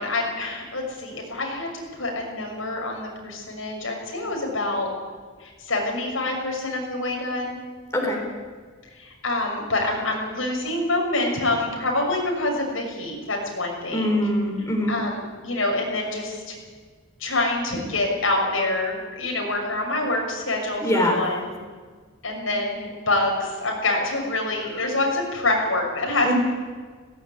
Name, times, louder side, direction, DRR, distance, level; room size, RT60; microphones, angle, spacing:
voice 1, 0.0-4.9 5.4-7.6 8.9-14.2 14.9-16.6 17.2-21.6 22.2-26.3, left 2 dB, 80° left, 0 dB, 6.5 m, -26 dB
voice 2, 13.9-15.0 20.8-21.2 26.2-26.3, left 1 dB, 15° left, 0 dB, 3.9 m, -23 dB
18.0 x 17.5 x 9.9 m, 1.5 s
head